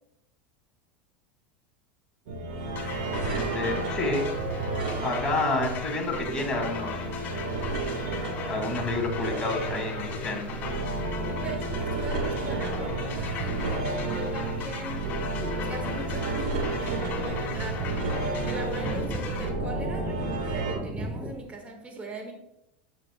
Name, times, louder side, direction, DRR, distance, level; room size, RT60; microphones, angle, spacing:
sound 1, 2.3-20.7, right 2 dB, 70° right, 1.6 m, -31 dB
sound 2, 2.8-19.5, left 7 dB, 40° left, 2.0 m, -39 dB
voice 1, 3.3-4.2 5.0-6.9 8.5-10.6, left 2 dB, 15° left, 1 dB, 2.2 m, -29 dB
voice 2, 11.3-15.1 15.4-18.2 18.4-22.3, right 2 dB, 25° right, 2 dB, 1.6 m, -39 dB
sound 3, 14.8-21.4, right 1 dB, 10° right, 1.3 m, -39 dB
9.0 x 6.8 x 2.2 m, 0.88 s
hypercardioid pair, 95°, 5 cm